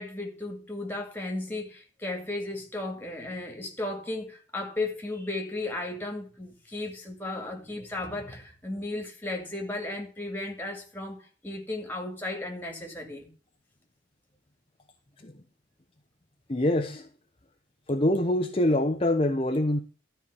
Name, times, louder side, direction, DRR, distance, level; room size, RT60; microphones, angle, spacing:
voice 1, 0.0-13.3, left 2 dB, 10° left, 2.3 m, -35 dB
voice 2, 16.5-17.1 17.9-19.8, left 1 dB, 30° left, 0.9 m, -25 dB
13.0 x 4.6 x 8.4 m
head